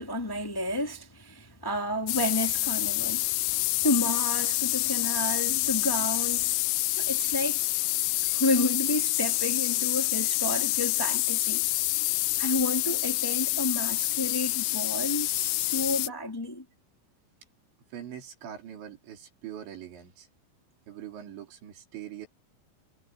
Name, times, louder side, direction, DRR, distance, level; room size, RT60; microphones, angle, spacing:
voice 1, 0.0-3.3 3.8-6.5 7.0-7.6 8.2-11.6 12.4-16.6, left 1 dB, 30° left, 0.4 m, -31 dB
sound 1, 2.1-16.1, left 20 dB, 85° left, 2.9 m, -27 dB
voice 2, 17.9-20.3 20.9-22.3, right 10 dB, 80° right, 6.3 m, -42 dB
omnidirectional pair, 5.2 m